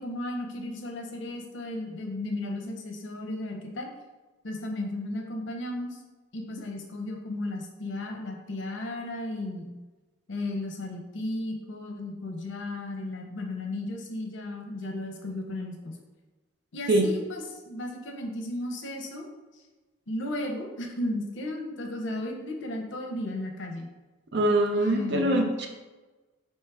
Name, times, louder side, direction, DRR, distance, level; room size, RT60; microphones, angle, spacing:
voice 1, 0.0-3.9 4.4-6.0 6.3-9.7 10.3-15.9 16.7-19.3 20.1-23.9 24.7-25.5, left 1 dB, 70° left, 2 dB, 0.6 m, -34 dB
voice 2, 24.3-25.7, right 1 dB, 60° right, 3 dB, 0.6 m, -23 dB
4.5 x 3.1 x 3.4 m, 1.2 s
head